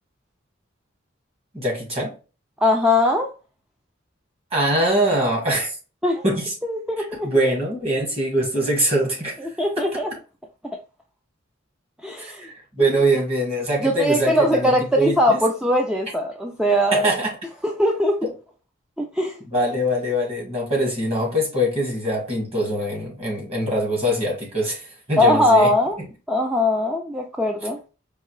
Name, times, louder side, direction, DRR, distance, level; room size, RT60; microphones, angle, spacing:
voice 1, 1.5-2.1 4.5-5.7 6.2-6.5 7.2-9.4 12.2-15.4 16.9-17.3 18.2-18.3 19.5-25.7, right 1 dB, 30° right, 1.7 m, -23 dB
voice 2, 2.6-3.3 6.0-6.2 6.6-7.3 9.4-10.1 10.6-10.8 12.0-12.5 13.8-17.1 17.6-18.2 19.0-19.4 25.2-26.0 26.3-27.8, left 1 dB, 5° right, 0.4 m, -20 dB
4.7 x 2.7 x 3.1 m
head